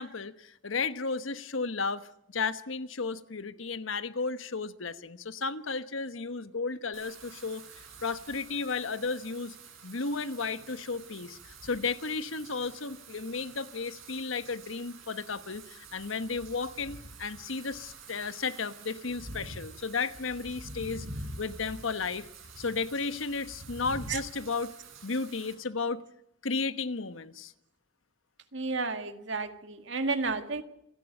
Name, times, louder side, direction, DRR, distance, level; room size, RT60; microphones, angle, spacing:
voice 1, 0.0-7.6 8.0-9.5 9.8-21.1 21.4-22.3 22.6-24.7 25.0-26.0 26.4-27.5, left 4 dB, 85° left, 12 dB, 1.2 m, -34 dB
Wind / Rain, 6.9-25.5, right 2 dB, 90° right, 8.0 m, -47 dB
voice 2, 28.5-30.6, right 3 dB, 70° right, 8 dB, 1.9 m, -32 dB
28.0 x 11.5 x 8.9 m, 0.80 s
head